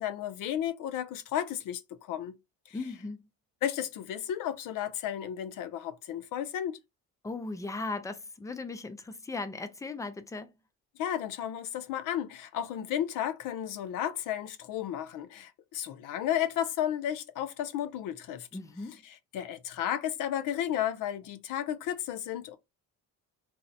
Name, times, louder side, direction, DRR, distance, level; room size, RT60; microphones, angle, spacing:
voice 1, 0.0-2.4 2.7-2.8 3.6-6.8 11.0-18.5 19.0-22.6, left 10 dB, 60° left, 0.6 m, -33 dB
voice 2, 2.7-3.2 7.2-10.5 18.5-19.0, left 3 dB, 10° left, 0.4 m, -37 dB
2.8 x 2.1 x 3.9 m
cardioid pair, 120°, 36 cm